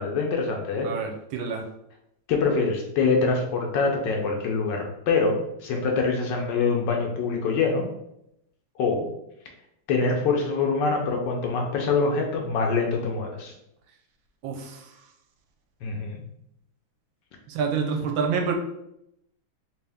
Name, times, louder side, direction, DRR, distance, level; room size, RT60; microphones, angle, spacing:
voice 1, 0.0-0.9 2.3-7.9 8.8-9.1 9.9-13.5 15.8-16.2, left 4 dB, 70° left, 1 dB, 1.1 m, -24 dB
voice 2, 0.8-1.7 14.4-14.9 17.5-18.5, right 5 dB, 75° right, 3 dB, 1.3 m, -27 dB
3.5 x 2.8 x 3.4 m, 0.81 s
omnidirectional pair, 2.2 m